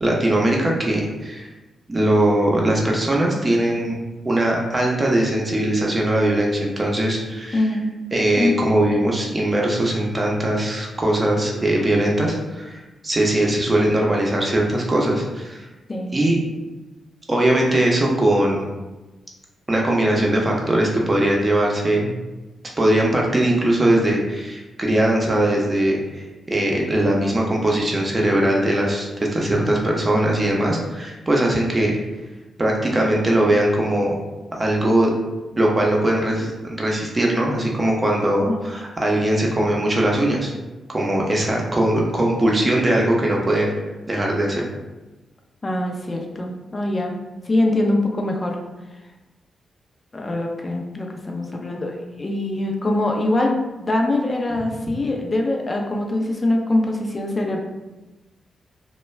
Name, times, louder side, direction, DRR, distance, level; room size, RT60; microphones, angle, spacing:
voice 1, 0.0-1.5 1.9-7.6 8.1-15.6 16.1-16.4 17.3-18.7 19.7-22.1 22.8-32.0 32.6-34.1 34.6-35.1 35.6-40.5 40.9-43.7 44.1-44.6, right 1 dB, 30° right, -1 dB, 0.7 m, -20 dB
voice 2, 7.5-7.9 8.4-8.6 15.9-16.2 38.5-38.6 45.6-47.2 47.4-48.6 50.1-57.6, left 1 dB, 35° left, 1 dB, 0.5 m, -23 dB
2.2 x 2.2 x 3.1 m, 1.1 s
supercardioid pair, 50°, 0 cm